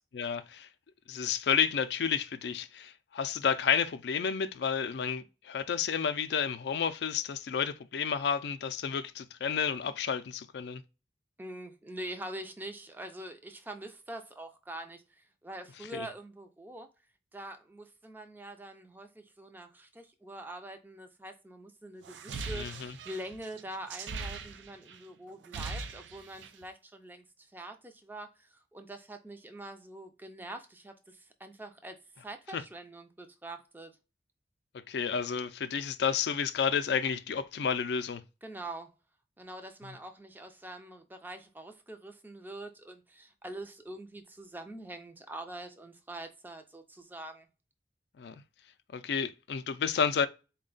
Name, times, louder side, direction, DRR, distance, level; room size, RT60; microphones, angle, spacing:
voice 1, 0.1-0.7 1.1-10.8 15.9-16.1 22.5-23.0 32.5-32.6 34.9-38.2 39.8-39.9 48.2-48.3 48.9-50.3, left 7 dB, 65° left, 0.4 m, -31 dB
voice 2, 11.4-16.9 17.3-34.0 38.4-38.9 39.4-47.5, right 1 dB, 10° right, 0.4 m, -44 dB
sound 1, 22.0-25.0 25.3-26.6, right 4 dB, 80° right, 0.4 m, -40 dB
4.1 x 2.2 x 3.8 m
head